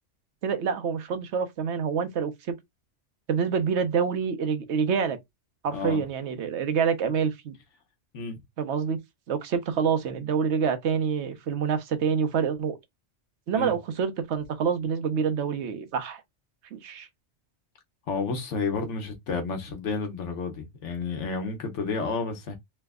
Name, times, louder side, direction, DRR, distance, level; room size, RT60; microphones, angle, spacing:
voice 1, 0.4-2.5 3.3-5.2 5.6-7.5 8.6-9.0 9.3-12.8 13.5-16.2 16.7-17.1, right 6 dB, 70° right, 1.0 m, -27 dB
voice 2, 18.1-22.6, left 4 dB, 80° left, 1.2 m, -31 dB
3.3 x 2.0 x 3.5 m
omnidirectional pair, 1.2 m